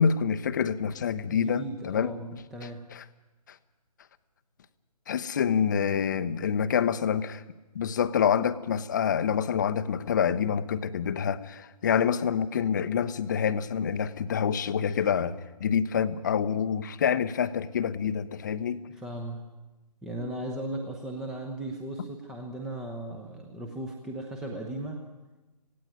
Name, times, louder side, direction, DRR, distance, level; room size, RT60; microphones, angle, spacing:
voice 1, 0.0-2.1 2.9-3.0 5.1-7.4 7.7-18.8, left 7 dB, 30° left, 0.7 m, -27 dB
voice 2, 1.3-2.8 11.9-12.0 18.9-19.4 20.0-25.0, right 1 dB, 5° right, 0.8 m, -37 dB
18.0 x 16.5 x 9.5 m
figure-of-eight pair, 155°, 21 cm